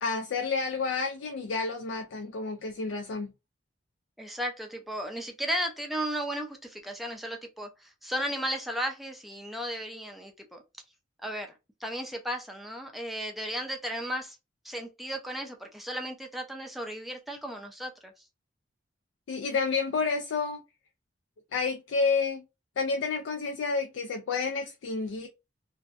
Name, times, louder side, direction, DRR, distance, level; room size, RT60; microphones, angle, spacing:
voice 1, 0.0-3.3 19.3-20.6 21.5-22.4 22.8-25.3, left 4 dB, 80° left, 0.4 m, -30 dB
voice 2, 4.2-10.6 11.2-11.5 11.8-14.4 14.6-18.2, equal, ahead, 0.4 m, -35 dB
2.6 x 2.1 x 2.4 m
head